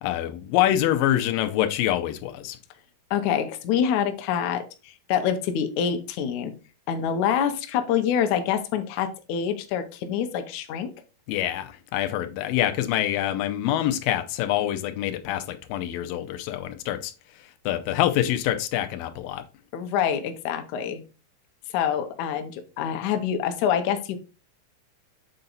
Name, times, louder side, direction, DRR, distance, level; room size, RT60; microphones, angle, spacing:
voice 1, 0.0-2.6 11.3-17.1 17.7-19.4, left 12 dB, 90° left, 2.4 m, -25 dB
voice 2, 3.1-6.5 6.9-10.9 19.7-21.0 21.7-24.2, left 8 dB, 70° left, 2.0 m, -26 dB
7.8 x 4.0 x 3.9 m
omnidirectional pair, 3.9 m